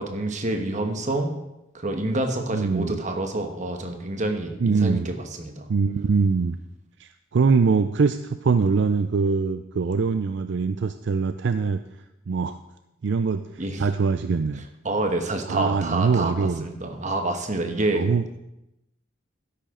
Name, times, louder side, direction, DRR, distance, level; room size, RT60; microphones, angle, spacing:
voice 1, 0.0-1.4 1.7-5.7 13.6-13.8 14.8-18.1, right 2 dB, 40° right, 5 dB, 1.3 m, -27 dB
voice 2, 2.5-3.0 4.6-5.1 5.7-6.6 7.0-11.8 12.3-12.6 13.0-14.6 15.5-16.7 17.9-18.2, right 5 dB, 65° right, 10 dB, 0.4 m, -23 dB
13.0 x 10.5 x 3.8 m, 0.90 s
head